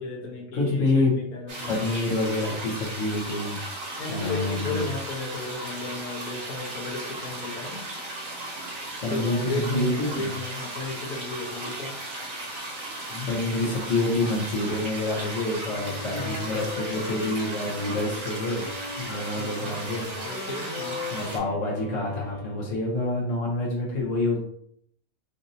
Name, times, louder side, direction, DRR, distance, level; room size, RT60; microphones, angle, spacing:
voice 1, 0.0-2.1 4.0-7.8 9.1-12.0 16.2-16.3 19.4-19.8 20.2-21.0, left 2 dB, 85° left, 0 dB, 1.4 m, -34 dB
voice 2, 0.5-1.1 1.7-3.6 4.1-4.8 9.0-10.3 13.1-18.7 19.0-20.1 21.1-24.4, left 2 dB, 60° left, -4 dB, 1.2 m, -27 dB
sound 1, 1.5-21.4, right 1 dB, 65° right, 1.4 m, -36 dB
Wind instrument woodwind instrument, 15.5-22.8, left 2 dB, 35° left, 0.4 m, -39 dB
5.1 x 2.7 x 2.6 m, 0.67 s
omnidirectional pair, 1.5 m